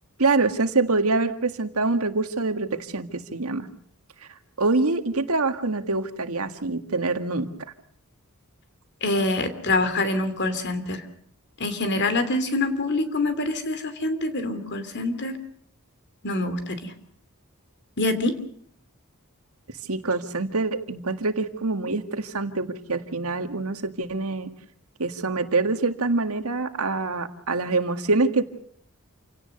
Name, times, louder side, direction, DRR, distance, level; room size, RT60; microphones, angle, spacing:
voice 1, 0.2-3.7 4.6-7.5 19.8-24.5 25.0-28.4, right 3 dB, 75° right, 8 dB, 1.8 m, -25 dB
voice 2, 9.0-11.0 11.6-15.3 16.2-16.9 18.0-18.4, left 2 dB, 50° left, 10 dB, 2.8 m, -25 dB
28.5 x 17.5 x 6.6 m, 0.62 s
head